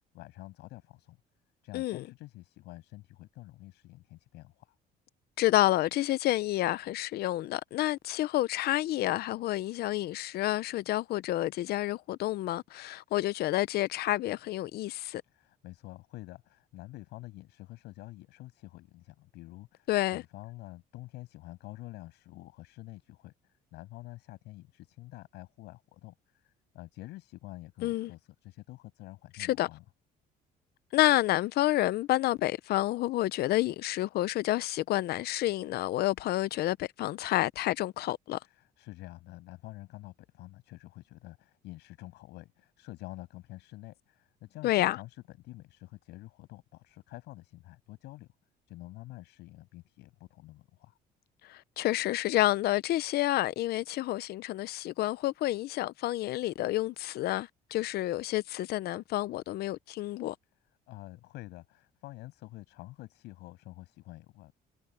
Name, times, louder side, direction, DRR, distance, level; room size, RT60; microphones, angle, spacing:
voice 1, 0.1-1.2 1.6-4.7 15.2-23.3 23.7-29.8 38.4-48.3 48.7-51.0 60.9-64.5, left 18 dB, 85° left, 7.6 m, -48 dB
voice 2, 5.4-15.2 19.9-20.2 27.8-28.1 29.4-29.7 30.9-38.4 44.6-45.0 51.5-60.3, left 15 dB, 70° left, 0.7 m, -29 dB
cardioid pair, 110°, 17 cm